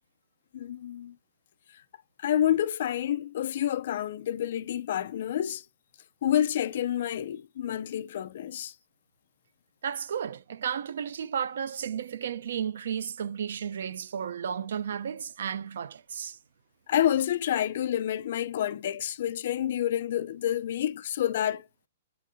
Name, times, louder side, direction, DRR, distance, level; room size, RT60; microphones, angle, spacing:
voice 1, 0.5-1.2 2.2-5.6 6.2-8.7 16.9-21.7, left 11 dB, 50° left, 0.4 m, -28 dB
voice 2, 9.8-16.4, right 8 dB, 65° right, 0.5 m, -33 dB
8.3 x 4.0 x 3.5 m
hypercardioid pair, 175°, 0 cm